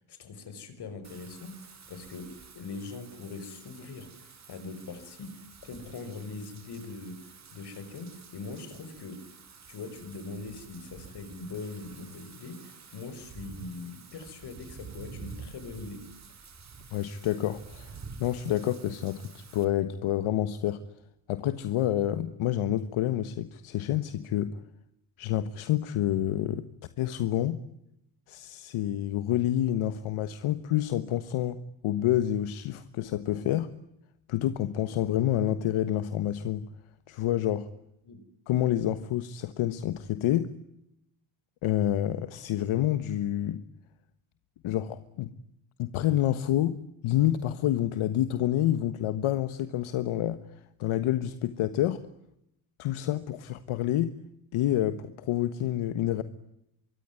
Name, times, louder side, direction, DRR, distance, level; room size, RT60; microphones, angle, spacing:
voice 1, 0.0-1.6 1.9-7.2 7.5-9.2 9.7-16.0 38.0-38.2, left 3 dB, 50° left, 6.0 m, -41 dB
Wind / Rain, 1.0-19.7, right 5 dB, 35° right, 4.1 m, -49 dB
voice 2, 16.9-17.9 18.2-20.8 21.3-24.6 25.2-26.7 27.0-27.6 28.3-31.6 31.8-33.7 34.3-36.7 37.1-37.7 38.5-40.5 41.6-43.6 44.6-45.3 45.8-46.8 47.0-50.4 50.8-52.0 52.8-54.1 54.5-56.2, left 12 dB, 80° left, 1.5 m, -28 dB
24.5 x 24.0 x 9.8 m
cardioid pair, 140°, 49 cm